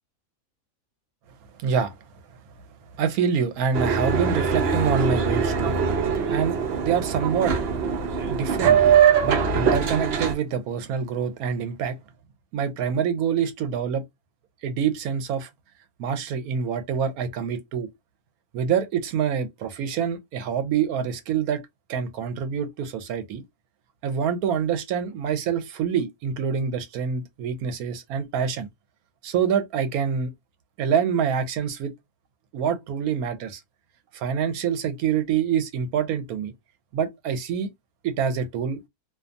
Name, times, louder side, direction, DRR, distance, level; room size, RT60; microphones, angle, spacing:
voice 1, 1.6-1.9 3.0-5.7 6.3-6.6 6.8-7.5 8.3-8.8 9.2-12.0 12.5-14.0 14.6-15.5 16.0-17.9 18.5-21.6 21.9-23.4 24.0-28.7 29.2-30.3 30.8-31.9 32.5-33.6 34.1-36.5 36.9-37.7 38.0-38.8, right 7 dB, 80° right, 1.1 m, -26 dB
Boat Water vehicle, 3.7-10.3, right 7 dB, 60° right, 0.7 m, -22 dB
2.5 x 2.2 x 2.5 m
omnidirectional pair, 1.5 m